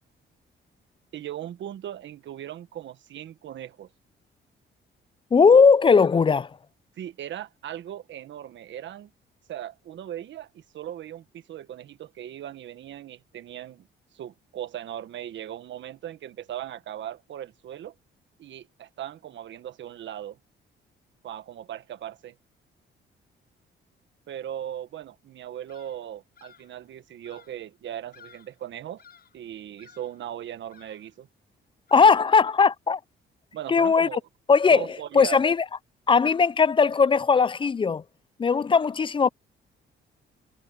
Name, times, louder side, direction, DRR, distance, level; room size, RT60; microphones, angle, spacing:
voice 1, 1.1-3.9 7.0-9.1 9.5-13.9 14.1-17.9 18.4-20.4 21.2-22.3 24.3-29.0 29.3-31.3 33.5-34.2 34.7-35.4, right 11 dB, 70° right, 1.5 m, -38 dB
voice 2, 5.3-6.5 31.9-33.0 33.7-34.1 34.5-34.9 35.1-35.6 36.1-38.0 38.4-39.3, left 5 dB, 25° left, 0.4 m, -18 dB
Bird vocalization bird call bird song, 25.7-26.1 26.3-26.8 27.2-27.7 28.1-28.6 29.0-29.4 29.8-30.3 30.7-31.2 31.9-32.4, left 7 dB, 50° left, 7.6 m, -55 dB
cardioid pair, 90°, 20 cm